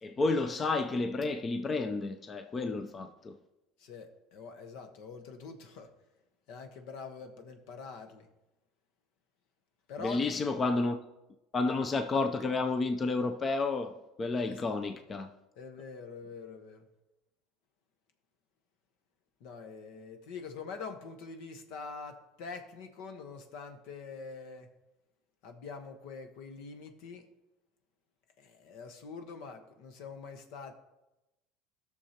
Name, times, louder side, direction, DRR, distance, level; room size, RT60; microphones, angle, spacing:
voice 1, 0.0-3.4 10.0-11.0 11.5-15.3, left 3 dB, 25° left, 0.5 m, -31 dB
voice 2, 3.8-5.9 6.5-8.3 9.9-10.5 14.5-14.6 15.6-16.9 19.4-24.7 25.4-27.3 28.4-30.7, left 5 dB, 70° left, 1.1 m, -45 dB
17.0 x 6.4 x 2.9 m
cardioid pair, 140°, 0 cm